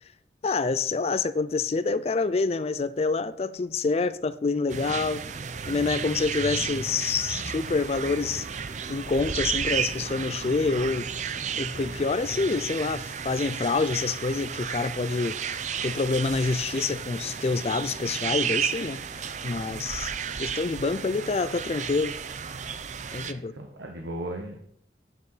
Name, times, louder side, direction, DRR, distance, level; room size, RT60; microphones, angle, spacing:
voice 1, 0.4-5.2 5.7-8.5 8.9-11.1 11.6-15.4 15.8-20.1 20.4-22.2 23.1-23.6, left 4 dB, 35° left, 0.4 m, -27 dB
sound 1, 4.7-23.3, right 7 dB, 40° right, 0.5 m, -33 dB
voice 2, 23.3-24.6, right 1 dB, 85° right, 1.3 m, -36 dB
9.6 x 8.8 x 4.1 m
head